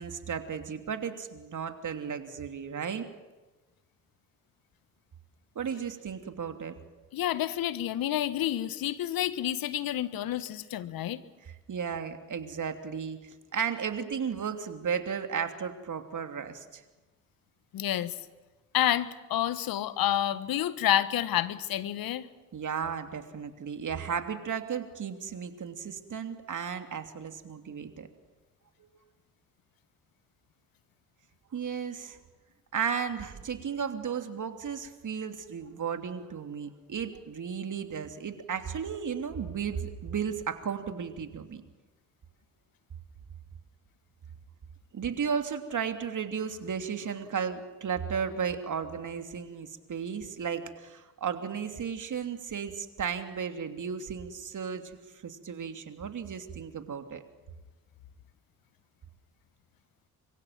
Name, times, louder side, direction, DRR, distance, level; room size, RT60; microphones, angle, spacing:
voice 1, 0.0-3.0 5.5-6.7 11.5-16.8 22.5-28.1 28.8-28.9 31.5-32.2 32.7-41.6 44.9-54.8 55.2-57.2, right 7 dB, 50° right, 7 dB, 2.9 m, -34 dB
voice 2, 7.1-11.2 17.7-18.1 18.7-22.2, left 12 dB, 65° left, 14 dB, 1.4 m, -29 dB
25.0 x 23.5 x 7.5 m, 1.2 s
hypercardioid pair, 45°, 38 cm